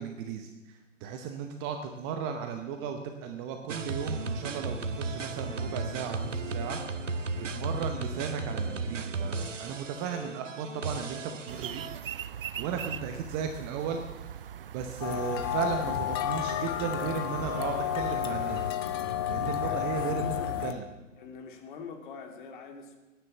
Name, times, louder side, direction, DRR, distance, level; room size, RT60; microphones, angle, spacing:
voice 1, 0.0-6.8 7.3-12.2 12.6-14.3 14.7-18.6 19.3-20.3 20.6-20.9, right 7 dB, 15° right, 5 dB, 0.8 m, -35 dB
sound 1, 3.7-12.0, right 3 dB, 70° right, 1.4 m, -35 dB
sound 2, 11.5-18.7, right 9 dB, 45° right, 0.5 m, -41 dB
sound 3, 15.0-20.7, left 10 dB, 20° left, 0.6 m, -31 dB
voice 2, 19.6-20.5 21.2-23.0, left 5 dB, 40° left, 5 dB, 2.6 m, -43 dB
17.0 x 10.5 x 7.5 m, 1.1 s
figure-of-eight pair, 130°, 39 cm